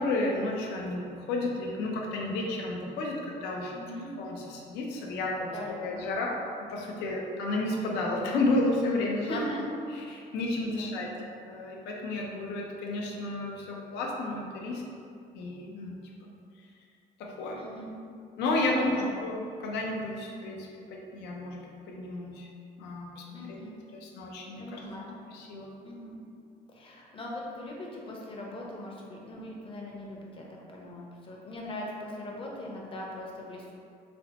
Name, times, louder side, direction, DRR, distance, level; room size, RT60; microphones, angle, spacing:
voice 1, 0.0-3.7 4.2-6.3 6.7-9.4 10.1-11.1 11.5-14.8 15.3-16.3 17.2-17.6 18.4-18.9 19.2-22.5 22.8-23.6 24.0-24.8 25.3-25.7, left 2 dB, 90° left, -1 dB, 0.6 m, -32 dB
voice 2, 3.7-4.1 5.5-6.0 9.2-9.6 10.7-11.1 17.5-18.0 18.7-19.2 23.3-23.8 24.6-25.1 25.8-26.2 26.7-33.7, left 1 dB, 30° left, -2 dB, 0.6 m, -40 dB
4.1 x 2.0 x 2.8 m, 2.4 s
cardioid pair, 110°, 17 cm